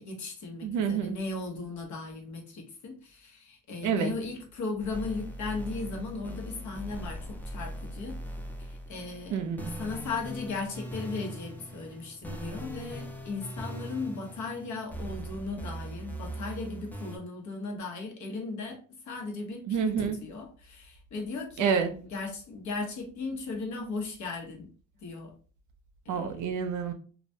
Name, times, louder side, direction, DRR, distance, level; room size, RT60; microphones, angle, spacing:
voice 1, 0.0-7.2 7.5-8.1 8.6-9.4 9.8-18.8 19.1-19.9 20.2-24.7 25.0-25.3 26.0-26.3, left 3 dB, 70° left, 2 dB, 0.8 m, -37 dB
voice 2, 0.6-1.2 3.8-4.1 9.3-9.7 19.7-20.2 21.6-22.0 26.1-26.9, right 6 dB, 80° right, 8 dB, 0.5 m, -28 dB
sound 1, 4.8-17.2, right 1 dB, 5° left, 0.4 m, -40 dB
2.3 x 2.1 x 2.6 m, 0.41 s
cardioid pair, 90°, 30 cm